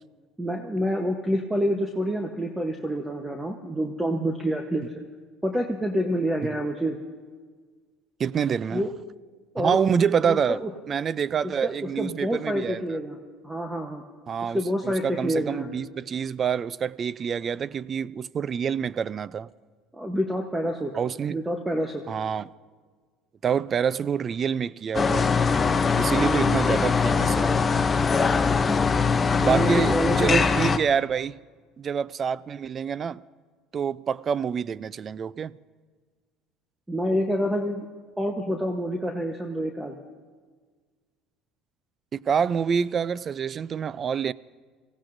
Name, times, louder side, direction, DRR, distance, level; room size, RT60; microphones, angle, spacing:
voice 1, 0.4-4.8 5.4-7.0 8.7-8.9 9.5-9.8 10.2-10.7 11.6-11.7 12.0-13.2 13.4-14.0 14.4-15.7 19.9-20.9 21.3-22.0 26.2-26.6 29.5-30.5 36.9-37.9 38.2-39.9, equal, 5° right, 1.0 m, -27 dB
voice 2, 8.2-8.9 9.6-10.6 10.9-13.0 14.3-19.5 20.9-21.4 22.1-22.5 23.4-25.4 25.9-27.6 29.4-31.4 31.8-33.2 33.7-35.5 42.1-44.3, right 7 dB, 30° right, 0.3 m, -27 dB
sound 1, 24.9-30.8, left 5 dB, 20° left, 0.6 m, -22 dB
26.0 x 16.5 x 2.6 m
cardioid pair, 130°, 0 cm